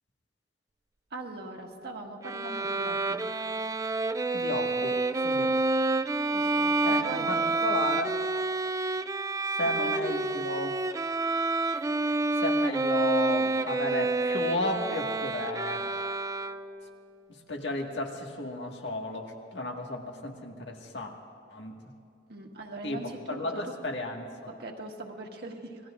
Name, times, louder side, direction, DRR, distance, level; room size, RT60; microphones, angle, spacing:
voice 1, 1.1-3.2 6.3-7.4 9.6-9.9 22.3-23.4 24.5-25.8, right 2 dB, 65° right, 2 dB, 1.6 m, -41 dB
Bowed string instrument, 2.2-16.9, right 3 dB, 20° right, 0.3 m, -28 dB
voice 2, 4.3-5.6 6.8-8.1 9.6-10.7 12.4-15.9 17.5-21.1 21.5-21.7 22.8-24.3, left 1 dB, 75° left, 1 dB, 1.8 m, -33 dB
27.0 x 20.0 x 2.5 m, 2.5 s
head